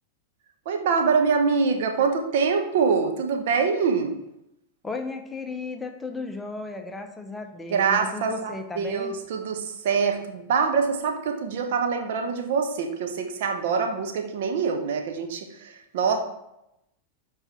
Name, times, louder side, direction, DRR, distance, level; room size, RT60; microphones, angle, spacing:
voice 1, 0.7-4.2 7.7-16.2, right 5 dB, 55° right, 4 dB, 1.0 m, -25 dB
voice 2, 4.8-9.1, left 3 dB, 10° left, 5 dB, 0.7 m, -35 dB
5.7 x 4.0 x 5.8 m, 0.85 s
figure-of-eight pair, 90°, 0 cm